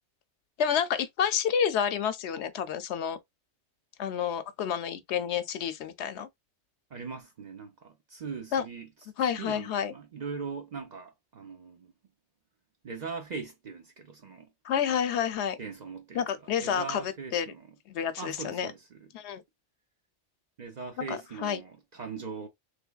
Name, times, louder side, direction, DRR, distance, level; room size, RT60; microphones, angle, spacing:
voice 1, 0.6-3.2 4.0-6.3 8.5-8.6 9.2-9.9 14.6-15.6 16.1-17.5 17.9-18.7 19.1-19.4 21.1-21.6, left 8 dB, 75° left, 0.8 m, -29 dB
voice 2, 6.9-8.9 9.4-11.9 12.8-14.5 15.6-17.8 18.2-19.1 20.6-22.5, right 5 dB, 45° right, 0.6 m, -40 dB
3.3 x 3.2 x 2.3 m
omnidirectional pair, 1.2 m